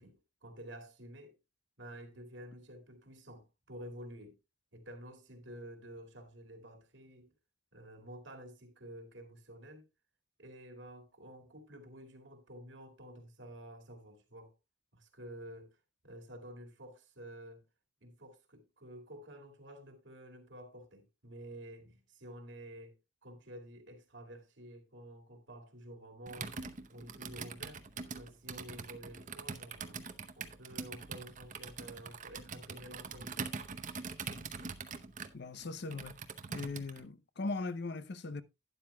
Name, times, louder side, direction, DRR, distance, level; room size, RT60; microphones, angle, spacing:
voice 1, 0.0-1.4 1.8-4.4 4.7-7.3 7.7-9.9 10.4-14.5 14.9-15.8 16.0-17.6 18.0-26.6 26.9-27.8 28.2-30.0 30.4-33.4, right 1 dB, 60° right, 2.2 m, -50 dB
Computer keyboard, 26.3-37.0, right 5 dB, 40° right, 0.8 m, -43 dB
voice 2, 35.3-36.2 36.5-38.4, left 3 dB, 55° left, 0.6 m, -39 dB
12.0 x 10.5 x 2.2 m
head